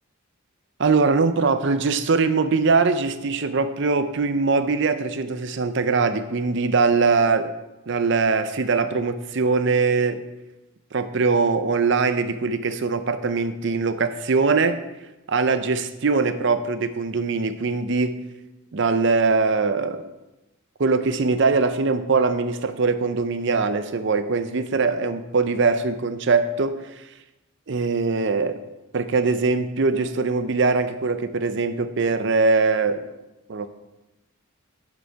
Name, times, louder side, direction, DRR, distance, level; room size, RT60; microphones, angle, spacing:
voice 1, 0.8-7.5 7.9-10.2 10.9-14.8 15.3-18.1 18.7-20.0 20.8-27.0 27.7-28.6 28.9-33.0 33.5-33.7, right 4 dB, 55° right, 10 dB, 0.6 m, -22 dB
10.0 x 5.2 x 4.6 m, 1.0 s
head